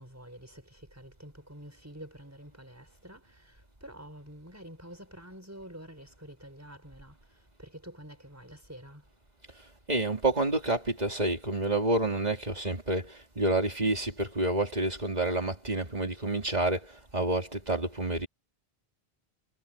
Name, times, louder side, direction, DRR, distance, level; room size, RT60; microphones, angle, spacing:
voice 1, 0.0-3.2 3.8-7.1 7.6-9.0, right 1 dB, 15° right, 4.5 m, -48 dB
voice 2, 9.5-18.3, right 2 dB, 40° right, 3.1 m, -29 dB
omnidirectional pair, 1.1 m